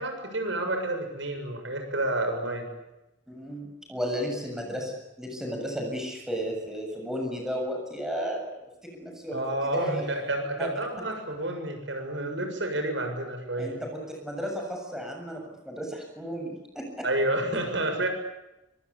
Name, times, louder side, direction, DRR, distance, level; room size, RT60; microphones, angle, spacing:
voice 1, 0.0-2.7 9.3-13.8 17.0-18.1, right 1 dB, 75° right, 5 dB, 7.3 m, -30 dB
voice 2, 3.3-4.9 5.2-8.5 8.8-10.1 10.6-10.7 13.6-17.1, equal, 5° right, 1 dB, 7.2 m, -34 dB
26.0 x 25.0 x 8.5 m, 0.97 s
head